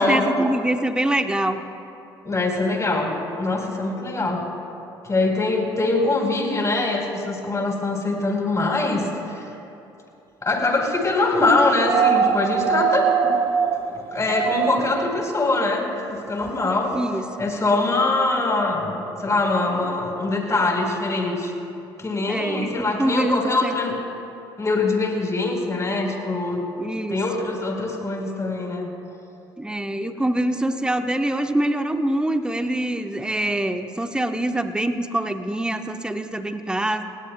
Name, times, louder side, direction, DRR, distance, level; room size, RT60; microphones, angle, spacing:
voice 1, 0.0-1.7 16.9-17.3 22.3-23.7 26.8-27.2 29.6-37.0, right 1 dB, 5° right, 8 dB, 1.1 m, -24 dB
voice 2, 2.2-4.4 5.0-9.4 10.4-13.3 13.9-16.9 17.4-21.5 22.0-23.9 24.6-26.6 27.1-28.9, left 2 dB, 25° left, 1 dB, 4.3 m, -23 dB
sound 1, 11.8-15.1 16.5-16.6, right 7 dB, 40° right, 1.1 m, -22 dB
29.0 x 19.5 x 2.3 m, 2.8 s
figure-of-eight pair, 50°, 12 cm